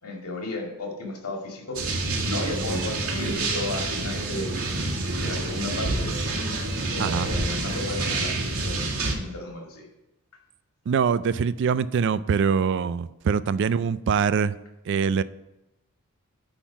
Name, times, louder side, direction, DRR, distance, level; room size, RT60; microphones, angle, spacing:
voice 1, 0.0-1.8 2.2-4.6 5.1-6.2 6.9-9.9, left 2 dB, 90° left, 1 dB, 2.1 m, -34 dB
sound 1, 1.7-9.1, right 2 dB, 85° right, 2.1 m, -28 dB
voice 2, 10.9-14.5 14.9-15.2, right 6 dB, 55° right, 16 dB, 0.3 m, -23 dB
10.0 x 3.9 x 6.0 m, 0.95 s
head